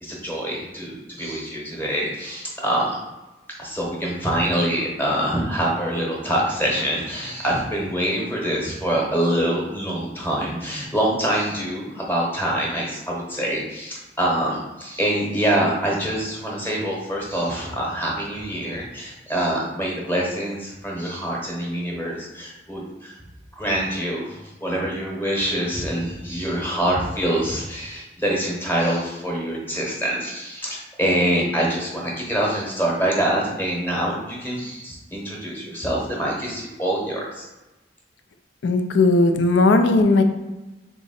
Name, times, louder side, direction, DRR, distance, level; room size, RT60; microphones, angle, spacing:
voice 1, 0.0-2.9 3.6-23.2 23.6-37.5, right 1 dB, 10° left, -3 dB, 0.9 m, -25 dB
voice 2, 38.6-40.2, left 2 dB, 85° left, 6 dB, 0.5 m, -17 dB
3.6 x 2.9 x 4.1 m, 1.1 s
head